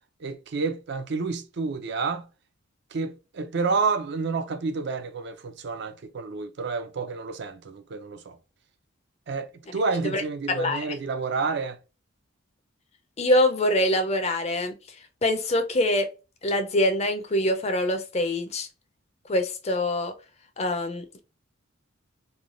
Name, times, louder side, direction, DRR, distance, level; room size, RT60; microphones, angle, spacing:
voice 1, 0.2-2.3 2.9-8.4 9.3-11.8, right 4 dB, 55° right, 0.4 m, -29 dB
voice 2, 10.5-10.9 13.2-14.7 15.2-16.1 16.4-18.7 19.3-20.1 20.6-21.2, left 1 dB, 30° left, 0.5 m, -24 dB
3.2 x 2.1 x 2.4 m
head